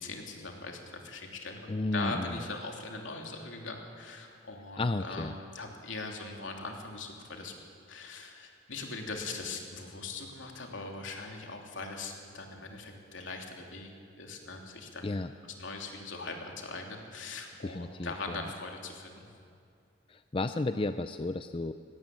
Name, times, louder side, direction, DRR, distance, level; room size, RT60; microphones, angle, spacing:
voice 1, 0.0-7.5 7.9-13.9 14.2-15.2 15.4-19.3, left 3 dB, 80° left, 2 dB, 3.0 m, -41 dB
voice 2, 1.7-2.2 4.8-5.3 15.0-15.3 17.6-18.4 20.1-21.7, left 2 dB, 25° left, 10 dB, 0.5 m, -32 dB
18.5 x 17.5 x 8.8 m, 2.4 s
head